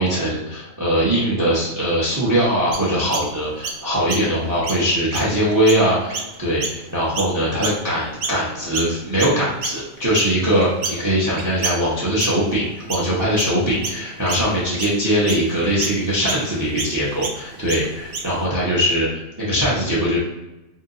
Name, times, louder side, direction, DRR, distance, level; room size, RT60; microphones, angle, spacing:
voice 1, 0.0-20.2, equal, 20° right, -6 dB, 0.5 m, -21 dB
Chirp tweet, 2.7-8.4 8.7-18.5, right 4 dB, 75° right, 0.5 m, -31 dB
2.7 x 2.1 x 3.7 m, 1.0 s
omnidirectional pair, 1.5 m